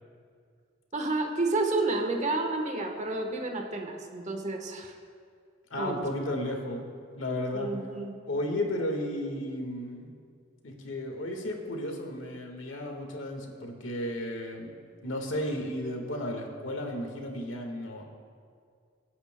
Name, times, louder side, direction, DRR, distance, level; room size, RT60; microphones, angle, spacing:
voice 1, 0.9-4.9 5.8-6.0 7.5-8.2, right 2 dB, 35° right, 3 dB, 1.1 m, -30 dB
voice 2, 5.7-7.7 8.3-10.1 10.6-14.7 15.0-18.0, left 1 dB, 75° left, 2 dB, 1.6 m, -34 dB
23.5 x 9.7 x 2.2 m, 2.2 s
head